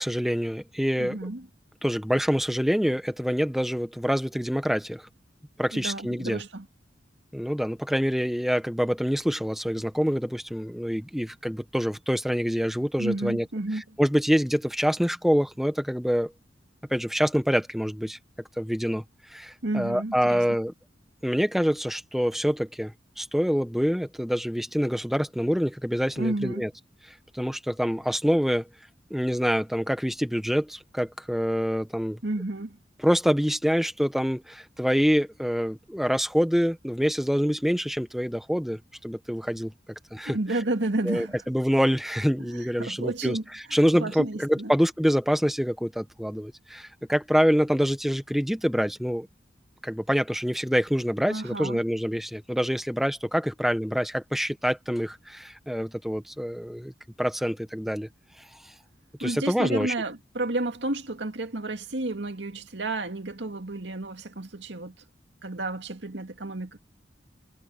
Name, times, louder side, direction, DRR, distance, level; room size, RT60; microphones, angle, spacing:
voice 1, 0.0-1.2 1.8-5.1 5.6-6.4 7.3-13.5 14.0-16.3 16.9-18.2 18.6-19.0 19.3-20.7 21.2-26.7 27.3-28.7 29.1-32.2 33.0-39.7 40.1-40.4 41.0-43.4 43.7-49.3 49.8-56.9 57.2-58.1 59.2-59.9, equal, ahead, 1.1 m, -26 dB
voice 2, 1.0-1.5 5.7-6.7 13.0-13.8 19.6-20.4 26.2-26.7 32.2-32.8 40.2-41.4 42.4-43.4 43.7-44.7 51.3-51.8 59.2-65.0 65.4-66.8, right 2 dB, 85° right, 2.2 m, -31 dB
head